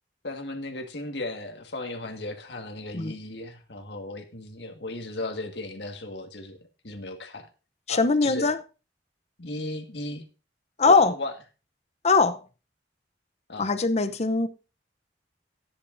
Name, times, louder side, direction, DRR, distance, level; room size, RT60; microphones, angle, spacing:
voice 1, 0.2-6.6 6.8-7.5 7.9-8.5 9.4-10.2 10.8-11.3 13.5-13.7, left 2 dB, 75° left, 1.8 m, -35 dB
voice 2, 7.9-8.6 10.8-11.1 12.0-12.4 13.6-14.5, left 4 dB, 40° left, 0.8 m, -21 dB
14.0 x 10.0 x 2.7 m
head